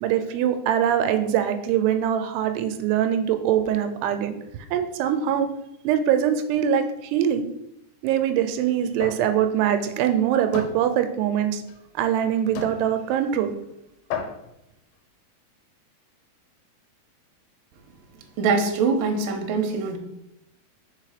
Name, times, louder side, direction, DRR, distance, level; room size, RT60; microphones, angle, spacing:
voice 1, 0.0-4.4 4.7-5.5 5.8-7.5 8.0-11.6 12.0-13.5, right 9 dB, 90° right, 8 dB, 2.7 m, -23 dB
sound 1, 9.0-9.3 9.7-9.9 10.5-10.8 11.7-11.8 12.6-12.8 13.6-13.7 14.1-14.5, left 7 dB, 80° left, 2.7 m, -32 dB
voice 2, 18.4-20.0, right 4 dB, 70° right, 3 dB, 2.3 m, -23 dB
6.0 x 4.1 x 4.9 m, 0.84 s
omnidirectional pair, 4.6 m